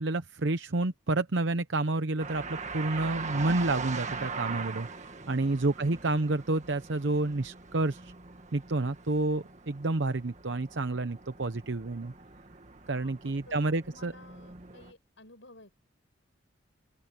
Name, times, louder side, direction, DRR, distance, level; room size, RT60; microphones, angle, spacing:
voice 1, 0.0-8.1 8.5-12.1 12.9-14.1, right 2 dB, 75° right, 0.9 m, -29 dB
sound 1, 2.2-14.9, right 4 dB, 40° right, 1.7 m, -41 dB
voice 2, 12.9-15.8, left 2 dB, 85° left, 6.6 m, -54 dB
open air
head